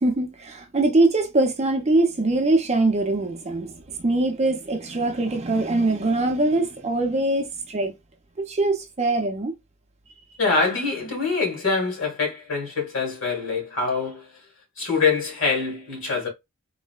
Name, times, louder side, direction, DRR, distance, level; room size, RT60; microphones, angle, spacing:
voice 1, 0.0-7.9 8.4-9.5, right 2 dB, 30° right, 0.5 m, -22 dB
voice 2, 10.4-14.2 14.8-16.3, left 4 dB, 65° left, 1.9 m, -24 dB
3.7 x 2.1 x 2.2 m
head